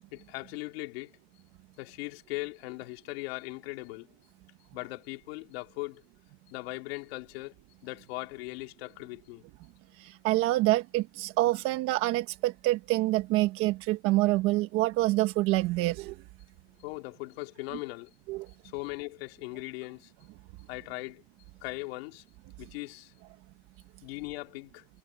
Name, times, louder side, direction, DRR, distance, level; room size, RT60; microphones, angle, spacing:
voice 1, 0.1-1.1 1.8-4.1 4.7-6.0 6.5-7.5 7.8-9.4 16.8-18.1 18.6-20.1 20.7-21.2 21.6-22.2 22.6-23.1 24.0-24.9, left 22 dB, 65° left, 3.7 m, -39 dB
voice 2, 10.0-16.1 18.3-18.5, right 18 dB, 40° right, 1.3 m, -26 dB
supercardioid pair, 170°, 33 cm